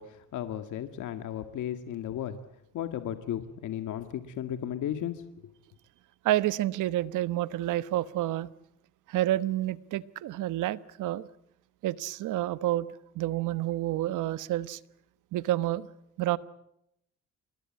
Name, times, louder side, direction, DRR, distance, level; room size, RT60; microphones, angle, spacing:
voice 1, 0.0-2.4 2.7-5.5, left 10 dB, 80° left, 8 dB, 2.0 m, -35 dB
voice 2, 6.2-8.5 9.1-11.3 11.8-12.9 13.1-14.8 15.3-15.9 16.2-16.4, right 14 dB, 90° right, 16 dB, 1.2 m, -29 dB
27.0 x 21.5 x 8.7 m, 0.79 s
cardioid pair, 90°, 30 cm